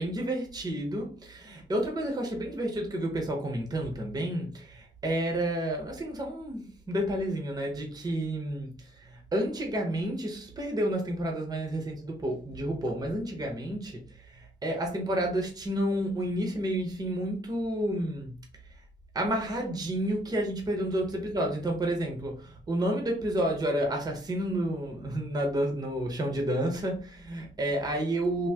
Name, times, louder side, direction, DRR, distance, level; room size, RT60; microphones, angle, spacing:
voice 1, 0.0-18.4 19.1-28.5, right 1 dB, 20° right, 0.7 m, -30 dB
3.4 x 2.6 x 2.7 m
wide cardioid pair, 175°, 19 cm